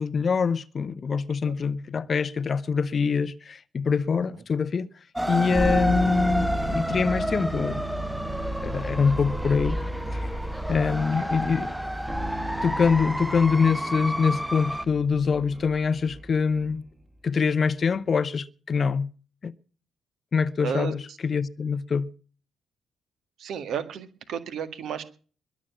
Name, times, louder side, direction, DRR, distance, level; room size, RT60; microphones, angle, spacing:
voice 1, 0.0-4.9 5.3-7.8 8.6-9.8 10.1-10.3 10.7-11.7 12.6-16.8 17.2-19.1 19.4-19.5 20.3-22.1, left 5 dB, 40° left, 0.7 m, -24 dB
sound 1, 5.1-14.9, equal, ahead, 0.9 m, -30 dB
sound 2, 5.5-16.9, right 1 dB, 25° right, 2.3 m, -34 dB
voice 2, 20.6-21.2 23.4-25.0, right 8 dB, 55° right, 1.7 m, -33 dB
22.0 x 7.4 x 7.3 m
figure-of-eight pair, 40°, 0 cm